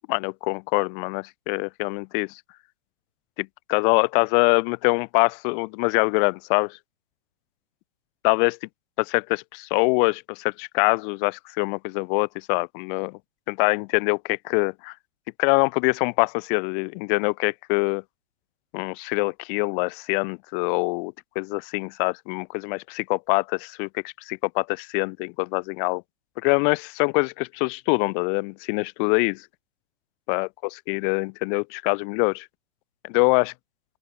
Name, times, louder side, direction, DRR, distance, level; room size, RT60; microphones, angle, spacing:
voice 1, 0.1-2.4 3.4-6.8 8.2-8.7 9.0-13.2 13.5-14.9 15.4-18.0 18.7-26.0 26.4-29.4 30.3-30.5 30.9-32.5 33.0-33.5, left 36 dB, 40° left, 4.5 m, -24 dB
open air
hypercardioid pair, 120°, 39 cm